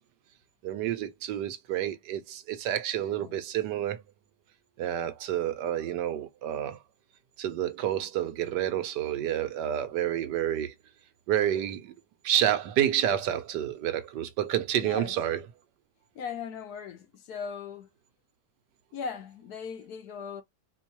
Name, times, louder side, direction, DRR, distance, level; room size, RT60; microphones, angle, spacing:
voice 1, 0.6-4.0 4.8-6.8 7.4-10.7 11.3-11.9 12.2-15.4, right 11 dB, 80° right, 1.3 m, -29 dB
voice 2, 14.7-15.1 16.1-17.9 18.9-20.4, left 6 dB, 70° left, 1.2 m, -38 dB
4.4 x 2.3 x 2.9 m
omnidirectional pair, 1.9 m